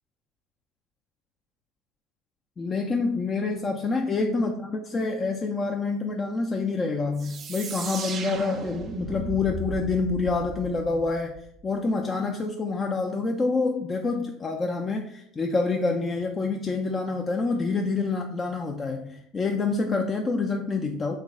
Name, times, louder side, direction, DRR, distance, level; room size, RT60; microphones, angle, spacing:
voice 1, 2.6-21.2, left 3 dB, 30° left, 2 dB, 0.3 m, -27 dB
sound 1, 7.2-11.7, right 5 dB, 40° right, 0.4 m, -36 dB
3.1 x 2.2 x 3.5 m, 0.72 s
hypercardioid pair, 85°, 0 cm